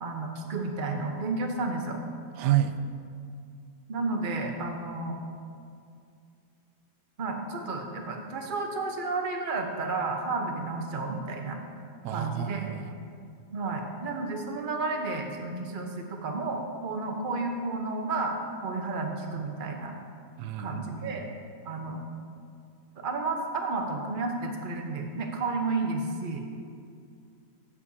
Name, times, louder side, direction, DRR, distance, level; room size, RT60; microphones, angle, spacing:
voice 1, 0.0-2.0 3.9-5.2 7.2-11.6 12.1-12.8 13.5-18.4 18.6-19.9 20.6-21.3 21.6-22.0 23.0-26.4, right 3 dB, 35° right, 3 dB, 1.0 m, -32 dB
voice 2, 2.4-2.7 12.0-12.9 20.4-21.2, right 12 dB, 90° right, 9 dB, 1.2 m, -29 dB
15.5 x 8.6 x 2.8 m, 2.4 s
omnidirectional pair, 1.7 m